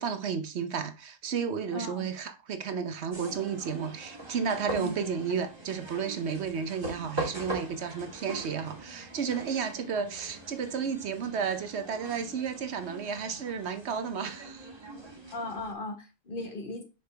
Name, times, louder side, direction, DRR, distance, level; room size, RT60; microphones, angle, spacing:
voice 1, 0.0-14.7, right 6 dB, 75° right, 1.1 m, -32 dB
voice 2, 1.7-2.1 4.8-4.9 15.3-16.8, left 2 dB, 50° left, 1.5 m, -37 dB
sound 1, 3.1-15.7, right 1 dB, 25° right, 1.5 m, -42 dB
5.9 x 5.1 x 3.4 m
omnidirectional pair, 1.1 m